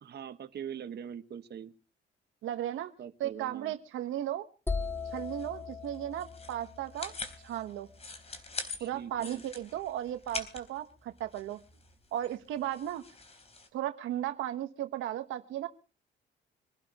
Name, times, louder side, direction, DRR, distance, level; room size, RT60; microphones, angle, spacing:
voice 1, 0.0-1.7 3.0-3.7 8.8-9.4, right 8 dB, 55° right, 9 dB, 1.4 m, -42 dB
voice 2, 2.4-2.9 3.2-4.5 5.0-7.1 7.4-7.9 8.8-11.6 12.1-13.0 13.7-15.7, right 12 dB, 85° right, 8 dB, 1.3 m, -35 dB
sound 1, 4.7-8.5, left 4 dB, 10° left, 0.7 m, -39 dB
sound 2, 4.8-13.7, left 3 dB, 30° left, 3.8 m, -45 dB
25.5 x 12.0 x 3.0 m, 0.36 s
cardioid pair, 90°, 20 cm